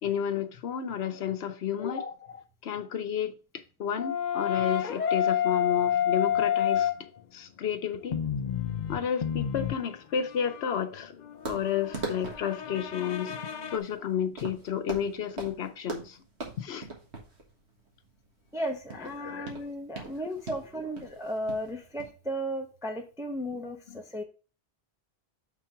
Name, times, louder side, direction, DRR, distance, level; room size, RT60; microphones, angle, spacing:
voice 1, 0.0-3.3 3.8-8.2 8.9-11.1 11.5-13.4 13.7-16.2 16.6-16.9 19.2-19.6 23.9-24.0, left 8 dB, 75° left, 1.0 m, -32 dB
sound 1, 4.0-7.2 7.9-13.8, left 9 dB, 50° left, 0.7 m, -29 dB
sound 2, 11.5-22.1, right 3 dB, 85° right, 1.9 m, -41 dB
voice 2, 18.5-24.2, equal, 5° right, 0.8 m, -35 dB
6.1 x 3.8 x 5.7 m
omnidirectional pair, 1.1 m